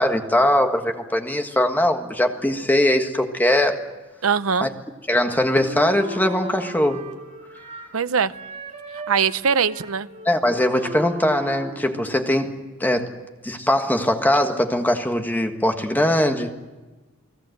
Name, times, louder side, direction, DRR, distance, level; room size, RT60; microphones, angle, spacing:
voice 1, 0.0-3.8 4.6-4.7 5.1-7.0 10.2-12.5 12.8-13.2 13.4-16.5, left 1 dB, 10° left, 5 dB, 1.6 m, -21 dB
voice 2, 4.2-4.7 7.9-8.3 9.1-10.1, right 6 dB, 75° right, 13 dB, 0.8 m, -21 dB
Wind instrument woodwind instrument, 5.6-8.0 8.3-12.4, right 2 dB, 35° right, 2.8 m, -37 dB
29.5 x 18.5 x 8.0 m, 1.2 s
head